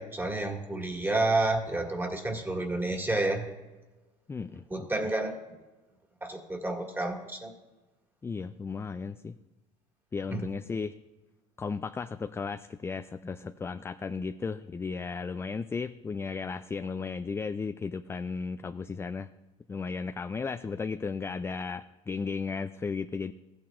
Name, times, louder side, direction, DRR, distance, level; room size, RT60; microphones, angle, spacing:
voice 1, 0.0-3.5 4.7-5.4 6.2-7.5 10.3-10.4, right 2 dB, 15° right, 2 dB, 1.9 m, -30 dB
voice 2, 4.3-4.9 8.2-9.4 10.1-11.0 11.6-19.3 19.7-23.3, left 5 dB, 15° left, 10 dB, 0.3 m, -35 dB
15.0 x 8.9 x 2.4 m, 1.2 s
supercardioid pair, 85°, 17 cm